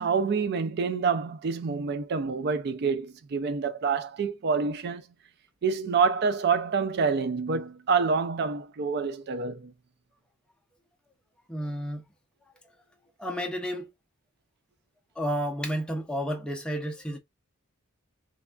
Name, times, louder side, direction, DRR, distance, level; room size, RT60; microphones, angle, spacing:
voice 1, 0.0-5.0 5.6-9.7, right 5 dB, 50° right, 0.3 m, -27 dB
voice 2, 11.5-12.0 13.2-13.9 15.2-17.2, equal, 5° left, 0.5 m, -31 dB
3.2 x 2.3 x 2.3 m
head